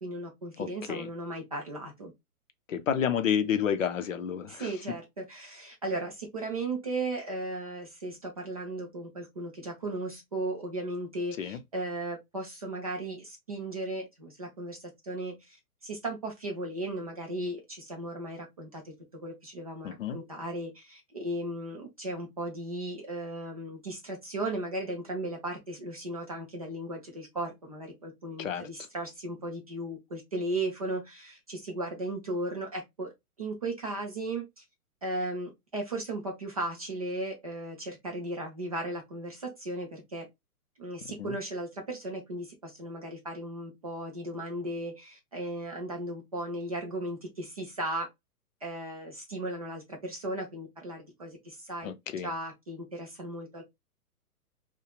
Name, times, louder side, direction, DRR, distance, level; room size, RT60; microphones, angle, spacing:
voice 1, 0.0-2.1 4.5-15.6 15.8-18.9 19.2-33.1 33.4-34.6 35.0-40.2 40.8-48.1 48.6-51.9 52.2-53.6, right 1 dB, 25° right, 0.4 m, -36 dB
voice 2, 0.6-1.1 2.7-4.7 11.4-11.6 19.8-20.2 28.4-28.7 41.2-41.4 51.8-52.3, left 8 dB, 60° left, 0.5 m, -30 dB
2.7 x 2.1 x 2.2 m
figure-of-eight pair, 120°, 46 cm